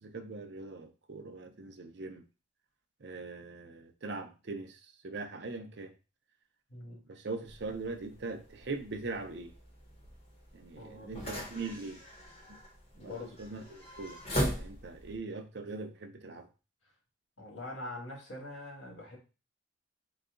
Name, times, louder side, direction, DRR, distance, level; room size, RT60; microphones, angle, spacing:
voice 1, 0.0-2.2 3.0-5.9 7.1-9.5 10.5-12.0 13.0-14.2 14.6-16.5, right 3 dB, 60° right, 0.6 m, -41 dB
voice 2, 6.7-7.0 10.8-11.5 12.9-13.4 17.4-19.2, left 2 dB, 80° left, 1.8 m, -44 dB
sound 1, 7.5-15.2, equal, 30° left, 1.0 m, -40 dB
4.0 x 2.3 x 3.7 m
head